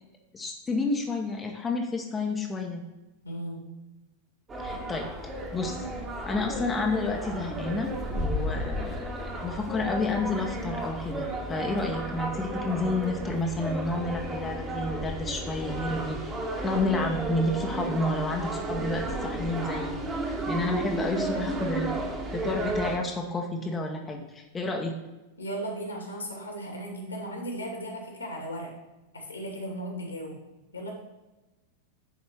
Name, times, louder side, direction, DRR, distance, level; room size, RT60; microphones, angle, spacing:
voice 1, 0.3-2.8 4.6-5.1 5.5-5.9 6.3-9.0 9.3-16.2 16.6-20.0 20.5-22.0 22.3-24.9, left 2 dB, 15° left, 1 dB, 1.1 m, -30 dB
voice 2, 3.2-3.7 20.8-21.5 25.4-28.7 29.1-30.4 30.7-30.9, right 1 dB, 80° left, 0 dB, 2.4 m, -36 dB
sound 1, 4.5-23.0, right 1 dB, 20° right, 1.7 m, -33 dB
9.9 x 4.3 x 5.9 m, 1.1 s
figure-of-eight pair, 90°, 0 cm